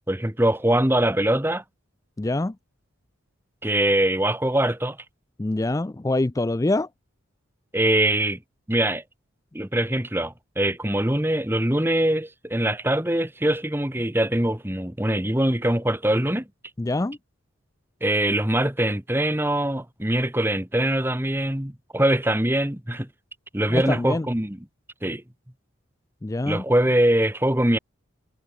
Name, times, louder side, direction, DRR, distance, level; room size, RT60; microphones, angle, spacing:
voice 1, 0.1-1.6 3.6-5.0 7.7-8.4 8.7-9.0 9.5-16.5 18.0-23.1 23.5-24.6 25.0-25.2 26.4-27.8, right 1 dB, 10° right, 1.5 m, -23 dB
voice 2, 2.2-2.5 5.4-6.9 16.8-17.2 23.7-24.3 26.2-26.6, left 2 dB, 15° left, 0.4 m, -25 dB
head